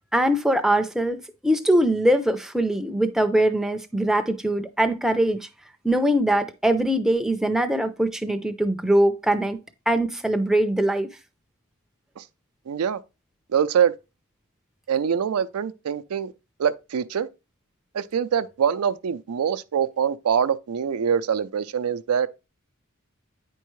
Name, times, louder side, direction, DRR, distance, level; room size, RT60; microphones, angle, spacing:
voice 1, 0.1-5.5 5.8-9.6 9.9-11.1, right 1 dB, ahead, 0.4 m, -22 dB
voice 2, 12.7-13.0 13.5-14.0 14.9-16.3 16.6-17.3 17.9-22.3, right 7 dB, 85° right, 0.4 m, -24 dB
9.2 x 4.5 x 3.1 m
head